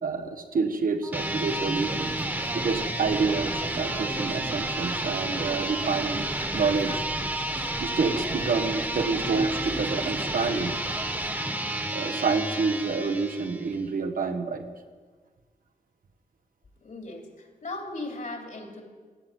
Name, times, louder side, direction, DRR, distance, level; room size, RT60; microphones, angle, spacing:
voice 1, 0.0-2.1 2.5-6.3 6.5-7.0 7.8-10.7 11.9-14.7, right 4 dB, 75° right, 6 dB, 1.3 m, -28 dB
sound 1, 1.0-13.8, right 1 dB, 15° right, 1.3 m, -31 dB
sound 2, 1.2-11.3, right 3 dB, 35° right, 0.6 m, -39 dB
voice 2, 16.8-18.8, left 2 dB, 70° left, 2 dB, 3.1 m, -37 dB
15.5 x 7.7 x 9.3 m, 1.5 s
wide cardioid pair, 90°, 14 cm